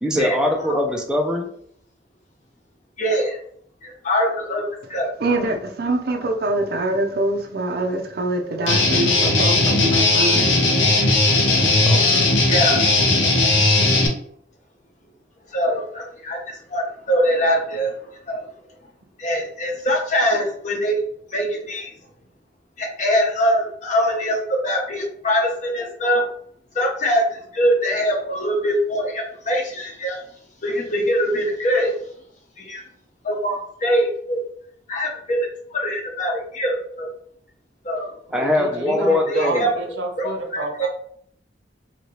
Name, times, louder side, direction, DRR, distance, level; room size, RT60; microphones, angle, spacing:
voice 1, 0.0-1.5 11.9-12.3 38.3-39.7, left 1 dB, 5° right, 0.4 m, -22 dB
voice 2, 3.0-3.4 3.8-4.6 4.9-5.1 12.5-12.8 15.5-17.9 18.3-18.5 19.2-21.0 21.3-21.9 22.8-26.3 26.7-30.2 30.6-31.9 32.6-32.8 33.2-34.4 34.9-37.1 37.8-38.1 38.9-39.7 40.2-40.9, equal, 40° left, 0.8 m, -23 dB
voice 3, 5.2-11.5, right 2 dB, 55° right, 0.5 m, -25 dB
Guitar, 8.7-14.1, left 2 dB, 85° left, 0.7 m, -17 dB
voice 4, 38.3-40.9, right 2 dB, 85° right, 0.8 m, -30 dB
2.9 x 2.8 x 3.0 m
head